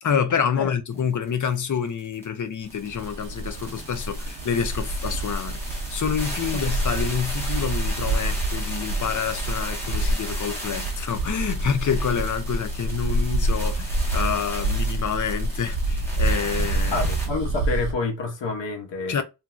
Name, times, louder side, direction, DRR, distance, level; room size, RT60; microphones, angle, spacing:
voice 1, 0.0-5.6 5.9-17.0 19.1-19.2, left 7 dB, 45° left, 0.5 m, -27 dB
sound 1, 1.0-1.1 1.3-17.3, equal, 5° left, 1.1 m, -37 dB
Bus, 2.8-17.9, right 2 dB, 85° right, 0.8 m, -27 dB
voice 2, 16.9-19.2, left 3 dB, 85° left, 0.9 m, -28 dB
3.1 x 2.6 x 2.3 m
wide cardioid pair, 150°, 43 cm